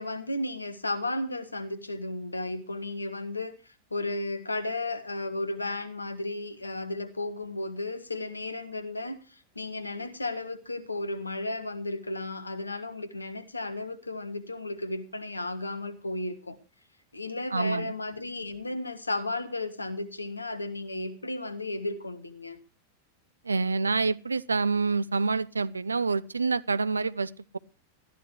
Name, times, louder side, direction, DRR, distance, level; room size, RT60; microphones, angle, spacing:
voice 1, 0.0-16.6 17.1-22.6, left 2 dB, 80° left, 1.5 m, -34 dB
voice 2, 17.5-17.9 23.5-27.6, right 4 dB, 75° right, 0.6 m, -27 dB
20.0 x 13.5 x 3.1 m
figure-of-eight pair, 90°, 0 cm